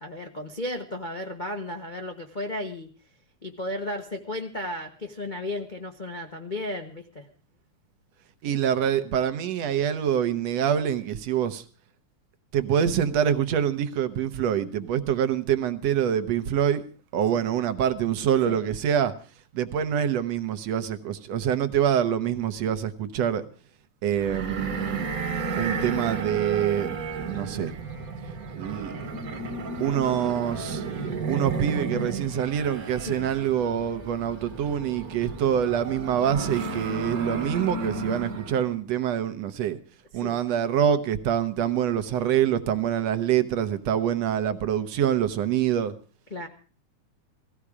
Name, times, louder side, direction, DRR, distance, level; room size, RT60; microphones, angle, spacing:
voice 1, 0.0-2.9 3.4-7.3 17.3-17.4 18.5-18.6 25.8-25.9 27.3-27.4 33.1-33.3 40.1-40.4 46.3-46.5, left 1 dB, 75° left, 2 dB, 0.4 m, -34 dB
voice 2, 8.4-11.6 12.5-16.8 17.1-19.1 19.5-23.4 24.0-25.1 25.6-26.9 27.3-27.8 28.5-28.9 29.8-30.9 31.3-39.8 40.1-45.9, right 9 dB, 65° right, 11 dB, 2.1 m, -25 dB
sound 1, 24.2-38.7, right 4 dB, 40° right, 1.5 m, -33 dB
17.5 x 15.0 x 4.9 m, 0.39 s
omnidirectional pair, 3.3 m